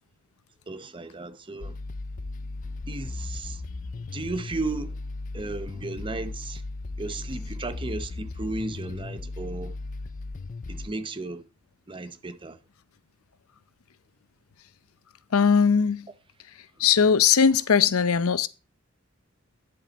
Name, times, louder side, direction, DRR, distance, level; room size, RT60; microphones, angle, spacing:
voice 1, 0.7-1.8 2.9-3.6 4.1-5.0 5.3-6.6 7.0-9.7 10.7-11.5 11.9-12.6, right 2 dB, 25° right, 0.7 m, -34 dB
sound 1, 1.6-10.9, left 3 dB, 40° left, 0.4 m, -36 dB
voice 2, 15.3-16.1 16.8-18.5, left 6 dB, 90° left, 0.6 m, -20 dB
10.0 x 7.6 x 4.0 m
head